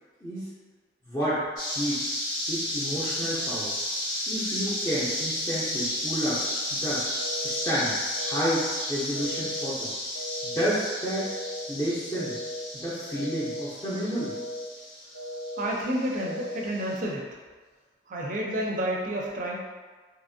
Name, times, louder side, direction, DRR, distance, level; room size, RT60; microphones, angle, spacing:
voice 1, 1.1-1.4 1.7-2.1 2.5-3.7 4.3-6.4 6.7-7.0 7.4-7.9 8.2-9.9 10.4-11.3 11.7-12.3 12.7-14.3, equal, 15° left, -12 dB, 0.5 m, -30 dB
sound 1, 1.6-17.0, left 1 dB, 90° left, 1.1 m, -33 dB
sound 2, 7.1-7.6 8.1-8.6 9.1-9.6 10.1-10.6 11.1-11.6 12.1-12.6 13.1-13.6 14.1-14.6 15.1-15.6 16.1-16.6, left 1 dB, 65° left, 0.5 m, -37 dB
voice 2, 15.6-17.3 18.1-19.6, equal, 45° right, -2 dB, 0.5 m, -30 dB
2.8 x 2.5 x 2.6 m, 1.4 s
head